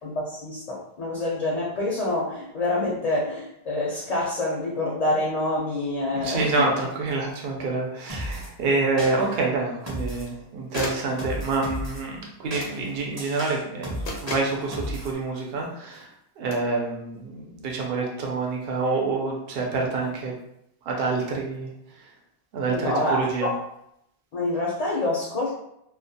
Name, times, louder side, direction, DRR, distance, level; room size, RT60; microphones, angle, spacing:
voice 1, 0.0-6.7 22.7-23.5 24.3-25.5, left 2 dB, 50° left, -4 dB, 0.5 m, -27 dB
voice 2, 6.1-16.1 16.4-20.4 20.8-21.7 22.0-22.1 22.5-23.5, right 3 dB, 75° right, 0 dB, 0.8 m, -27 dB
sound 1, 7.5-7.6 10.0-10.4 10.8-11.2 12.6-12.8 14.1-14.6 16.5-16.7, left 3 dB, 90° left, 0.8 m, -35 dB
sound 2, 8.1-8.5 9.0-9.4 9.9-10.3 10.7-12.0 12.5-15.1, equal, 20° right, 0.5 m, -34 dB
2.3 x 2.1 x 2.7 m, 0.78 s
omnidirectional pair, 1.0 m